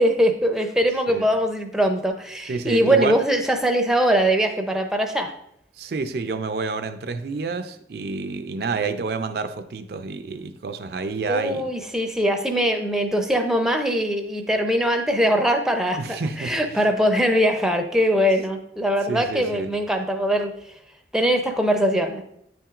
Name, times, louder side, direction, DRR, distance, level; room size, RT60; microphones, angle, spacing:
voice 1, 0.0-5.3 11.3-20.5 21.1-22.2, equal, 5° right, 0.5 m, -21 dB
voice 2, 2.5-3.2 5.8-11.7 16.0-16.8 19.1-19.7, right 4 dB, 60° right, 0.4 m, -29 dB
9.0 x 5.8 x 2.4 m
head